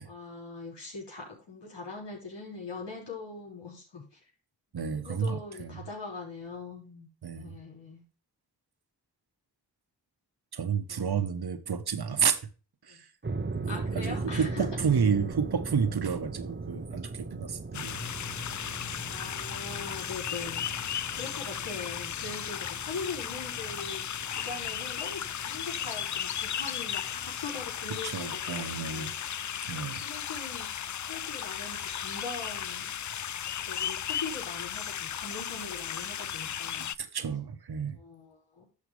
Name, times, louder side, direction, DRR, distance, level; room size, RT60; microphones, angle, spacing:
voice 1, 0.0-4.2 4.9-7.1 7.3-8.0 10.9-11.4 12.9-13.0 13.7-14.7 19.0-20.6 20.9-29.1 30.0-32.9 33.6-36.9 38.0-38.7, left 4 dB, 85° left, 5.8 m, -42 dB
voice 2, 4.7-5.8 7.2-7.6 10.5-12.4 12.8-13.1 13.5-18.0 28.0-29.2 29.7-30.0 37.0-38.0, right 6 dB, 65° right, 1.4 m, -30 dB
sound 1, 13.2-28.4, right 3 dB, 30° right, 1.0 m, -39 dB
sound 2, 17.7-36.9, left 9 dB, 45° left, 0.5 m, -35 dB
11.5 x 6.5 x 3.4 m
cardioid pair, 55°, 41 cm